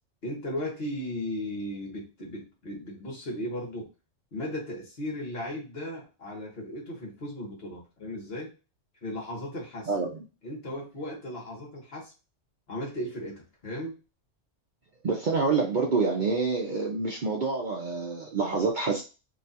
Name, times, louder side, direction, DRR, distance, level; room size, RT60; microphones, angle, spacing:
voice 1, 0.2-3.9 4.3-8.5 9.0-9.9 10.4-12.1 12.7-14.0, left 1 dB, 55° left, -2 dB, 1.4 m, -36 dB
voice 2, 9.9-10.2 15.0-19.0, right 4 dB, 50° right, -1 dB, 0.6 m, -27 dB
3.0 x 2.4 x 4.0 m, 0.31 s
omnidirectional pair, 1.3 m